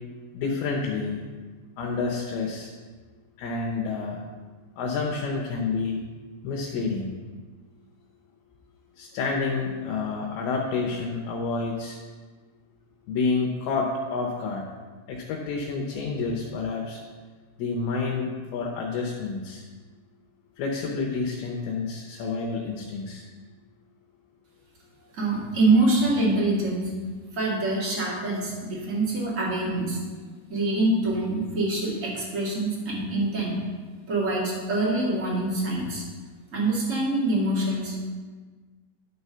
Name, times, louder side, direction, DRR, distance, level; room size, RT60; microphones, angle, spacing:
voice 1, 0.3-1.2 1.8-2.7 3.4-4.2 4.8-6.0 6.4-7.1 9.0-12.0 13.1-14.7 15.1-17.0 17.6-19.6 20.6-23.2, left 4 dB, 75° left, -1 dB, 2.6 m, -29 dB
voice 2, 25.1-26.9 27.3-30.0 30.5-33.6 34.1-36.0 36.5-38.0, right 2 dB, 50° right, -5 dB, 0.9 m, -25 dB
12.0 x 4.7 x 5.5 m, 1.4 s
omnidirectional pair, 5.0 m